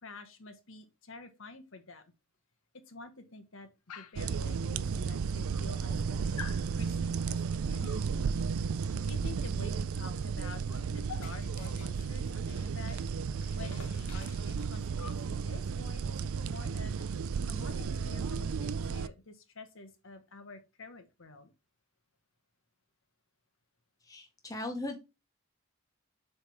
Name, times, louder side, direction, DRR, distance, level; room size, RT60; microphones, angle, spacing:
voice 1, 0.0-2.0 2.9-3.7 4.0-6.4 6.8-8.1 9.1-10.6 10.9-13.0 13.5-16.1 16.5-17.1 17.5-21.5, left 3 dB, 60° left, 7 dB, 1.1 m, -49 dB
Dog, 3.9-4.3 5.2-5.3 5.5-6.0 6.4-6.7 7.8-8.1 10.0-10.1 10.4-13.1 13.4-15.3 16.6-16.7 17.0-17.1 17.4-18.7, left 7 dB, 90° left, 0.7 m, -50 dB
sound 1, 4.2-19.1, right 5 dB, 70° right, 0.4 m, -33 dB
voice 2, 24.0-25.0, left 2 dB, 15° left, 4 dB, 0.6 m, -38 dB
7.1 x 3.5 x 4.4 m, 0.28 s
head